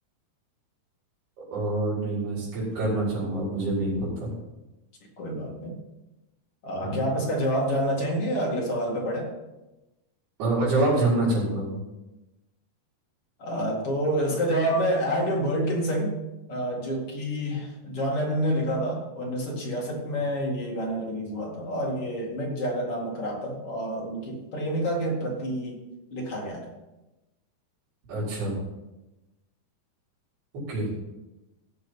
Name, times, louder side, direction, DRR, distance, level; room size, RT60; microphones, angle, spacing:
voice 1, 1.4-4.3 6.8-7.0 10.4-11.8 28.1-28.6 30.7-30.9, right 2 dB, 70° right, -9 dB, 6.5 m, -26 dB
voice 2, 5.2-5.8 6.6-9.3 13.4-16.1 16.5-25.8 26.1-26.7, equal, 40° left, -2 dB, 2.6 m, -28 dB
16.5 x 6.9 x 5.5 m, 1.0 s
omnidirectional pair, 4.8 m